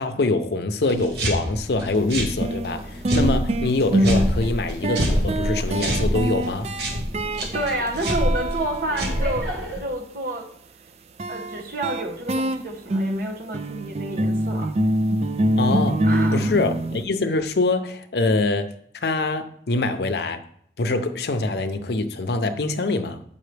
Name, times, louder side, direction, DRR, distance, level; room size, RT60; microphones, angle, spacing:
voice 1, 0.0-6.7 15.6-20.4 20.8-23.2, left 2 dB, 65° left, 0.6 m, -24 dB
sound 1, 0.9-9.8, equal, 70° right, 1.6 m, -27 dB
sound 2, 2.0-2.1 2.4-9.7 11.2-17.0, right 1 dB, 35° right, 0.3 m, -25 dB
voice 2, 7.4-9.5 9.8-10.5 11.3-14.8 16.0-16.7, right 1 dB, 50° right, 1.1 m, -29 dB
7.7 x 5.5 x 3.3 m
head